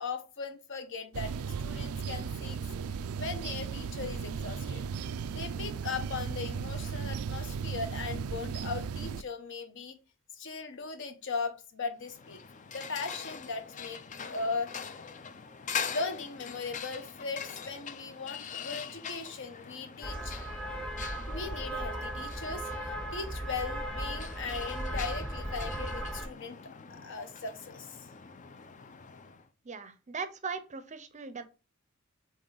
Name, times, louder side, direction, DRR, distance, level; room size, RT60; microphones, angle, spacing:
voice 1, 0.0-2.6 3.2-4.8 5.3-10.0 10.3-12.4 12.7-14.0 14.3-14.7 15.9-20.4 21.3-26.6 26.9-28.1, left 4 dB, 60° left, 1.0 m, -38 dB
sound 1, 1.1-9.2, right 6 dB, 75° right, 0.4 m, -36 dB
sound 2, 12.0-29.5, left 6 dB, 35° left, 0.5 m, -43 dB
sound 3, 20.0-26.3, right 1 dB, 5° left, 0.8 m, -36 dB
voice 2, 29.6-31.4, right 5 dB, 35° right, 0.6 m, -39 dB
7.6 x 3.2 x 3.9 m
head